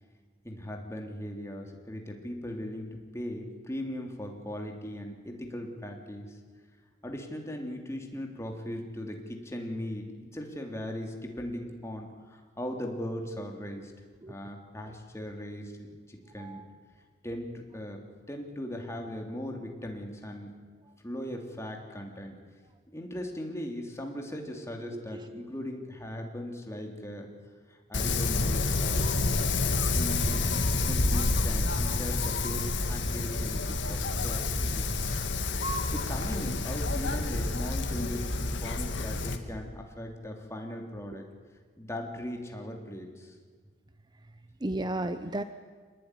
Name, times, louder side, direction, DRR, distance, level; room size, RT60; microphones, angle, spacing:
voice 1, 0.4-6.4 7.0-13.9 14.3-16.6 17.2-20.6 21.0-22.3 22.9-27.3 27.7-29.2 29.9-34.9 35.9-41.3 41.8-43.3, left 1 dB, 15° left, 2 dB, 3.3 m, -39 dB
voice 2, 24.8-25.5 44.6-45.4, right 1 dB, 25° right, 10 dB, 0.8 m, -34 dB
Wind, 27.9-39.4, left 3 dB, 80° left, 2.1 m, -28 dB
26.0 x 20.0 x 10.0 m, 1.5 s
head